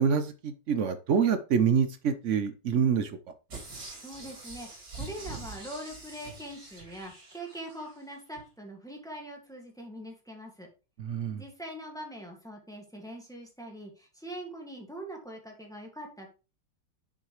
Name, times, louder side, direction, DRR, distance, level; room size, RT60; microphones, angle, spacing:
voice 1, 0.0-3.1 11.0-11.4, right 7 dB, 60° right, 0.8 m, -26 dB
sound 1, 3.5-7.9 8.4-8.5, right 3 dB, 75° right, 3.8 m, -44 dB
voice 2, 3.9-10.7 11.3-16.3, right 1 dB, ahead, 1.8 m, -43 dB
6.9 x 6.4 x 3.1 m
omnidirectional pair, 1.9 m